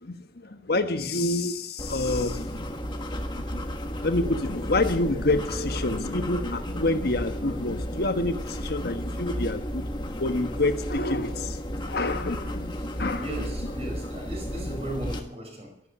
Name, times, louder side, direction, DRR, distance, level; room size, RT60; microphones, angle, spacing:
voice 1, 0.4-2.7 3.5-3.6 4.0-13.2, left 2 dB, 50° left, 1.3 m, -28 dB
sound 1, 1.8-15.2, equal, 25° left, 1.4 m, -33 dB
voice 2, 13.1-15.9, right 1 dB, 30° right, 5.5 m, -36 dB
13.0 x 12.5 x 8.5 m
head